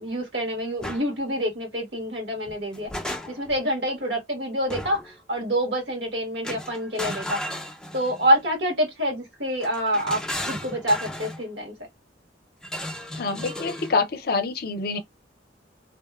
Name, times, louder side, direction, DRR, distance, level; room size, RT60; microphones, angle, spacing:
voice 1, 0.0-2.9 3.3-7.4 7.9-11.7, equal, 75° right, 1.4 m, -26 dB
sound 1, 0.8-1.0 2.5-3.6 4.7-5.1 6.4-8.3 9.6-11.4 12.6-14.0, left 1 dB, 5° left, 0.4 m, -34 dB
voice 2, 13.2-15.0, left 4 dB, 60° left, 0.5 m, -26 dB
2.7 x 2.1 x 2.3 m
head